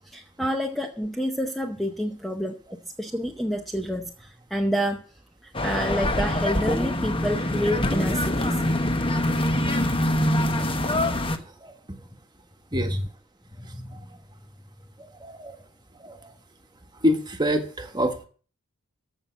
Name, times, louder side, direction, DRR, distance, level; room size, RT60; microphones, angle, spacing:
voice 1, 0.1-2.6 3.0-5.0 5.4-8.6 12.7-13.0 13.6-14.1, equal, ahead, 4 dB, 0.7 m, -28 dB
sound 1, 5.5-11.4, left 1 dB, 25° left, 1.1 m, -24 dB
voice 2, 11.6-12.0 12.7-13.0 15.0-15.6 16.0-16.3 17.0-18.3, equal, 20° right, 6 dB, 1.5 m, -27 dB
14.5 x 5.7 x 7.1 m, 0.41 s
head